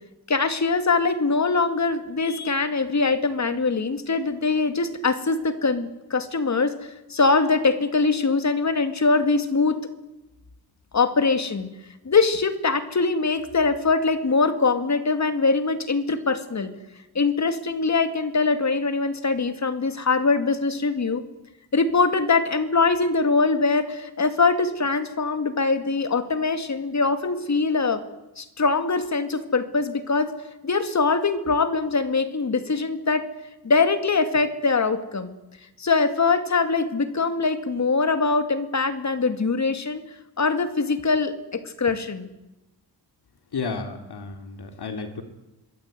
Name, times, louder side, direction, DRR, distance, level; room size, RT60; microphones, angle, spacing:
voice 1, 0.3-9.8 10.9-11.7 12.0-16.7 17.1-21.2 21.7-28.0 28.4-30.3 30.6-33.3 33.6-35.3 35.8-40.0 40.4-42.3, left 4 dB, 45° left, 10 dB, 2.3 m, -22 dB
voice 2, 43.5-45.2, left 4 dB, 75° left, 7 dB, 3.2 m, -32 dB
26.0 x 22.0 x 9.2 m, 0.99 s
wide cardioid pair, 175°, 39 cm